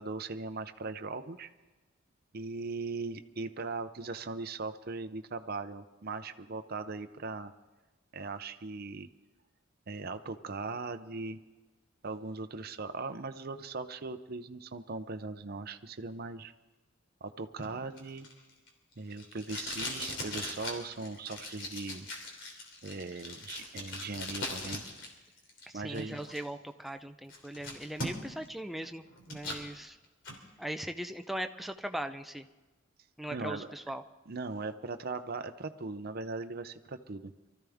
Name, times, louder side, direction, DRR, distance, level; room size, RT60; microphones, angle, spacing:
voice 1, 0.0-1.5 2.3-7.5 8.1-9.1 9.9-11.4 12.0-16.5 17.2-18.3 19.0-22.1 22.8-24.8 25.7-26.2 33.3-33.7 34.3-37.3, right 3 dB, 50° right, 9 dB, 0.6 m, -39 dB
Packing tape duct tape, 17.6-25.1 25.4-26.4 26.9-27.0 27.3-28.5 28.8-29.6 30.0-30.4, left 2 dB, 65° left, 3.0 m, -40 dB
voice 2, 25.7-30.0 30.6-32.5 33.2-34.0, right 1 dB, ahead, 7 dB, 0.5 m, -39 dB
24.0 x 14.0 x 3.6 m, 1.2 s
head